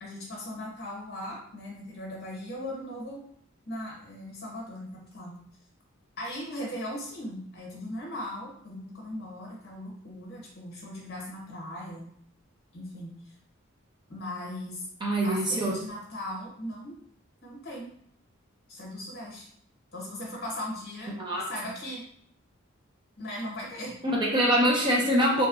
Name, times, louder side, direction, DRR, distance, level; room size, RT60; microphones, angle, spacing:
voice 1, 0.0-3.3 3.7-5.4 6.2-12.1 12.7-13.1 14.1-14.8 15.2-16.9 17.4-17.9 18.7-19.5 19.9-22.0 23.2-23.9, left 1 dB, 50° left, -2 dB, 0.9 m, -38 dB
voice 2, 15.0-15.7 21.2-21.4 24.0-25.5, equal, 20° right, -3 dB, 0.5 m, -24 dB
2.8 x 2.2 x 2.3 m, 0.65 s
head